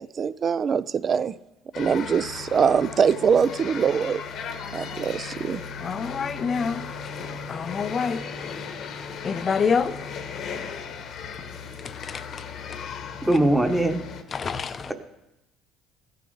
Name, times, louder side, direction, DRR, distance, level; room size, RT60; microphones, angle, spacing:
voice 1, 0.0-1.3 1.8-4.2 4.7-5.6, right 6 dB, 35° right, 0.3 m, -23 dB
sound 1, 1.7-14.2, left 6 dB, 55° left, 1.1 m, -36 dB
voice 2, 5.8-10.1 11.4-11.5 11.7-12.8 14.3-14.9, left 6 dB, 35° left, 0.6 m, -29 dB
voice 3, 13.3-14.0, right 1 dB, 5° right, 1.0 m, -20 dB
15.5 x 6.9 x 3.8 m
cardioid pair, 110°, 0 cm